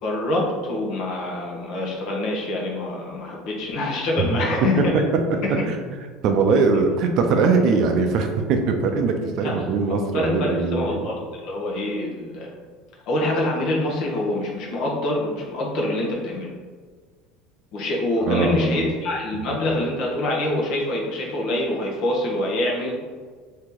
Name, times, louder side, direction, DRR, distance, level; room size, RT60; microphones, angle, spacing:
voice 1, 0.0-4.9 9.4-9.6 10.1-12.5 13.1-16.5 17.7-23.0, left 1 dB, 55° left, -2 dB, 0.9 m, -25 dB
voice 2, 6.2-11.1 18.3-18.9, right 4 dB, 50° right, 5 dB, 0.4 m, -21 dB
3.0 x 2.8 x 3.7 m, 1.5 s
cardioid pair, 140°, 0 cm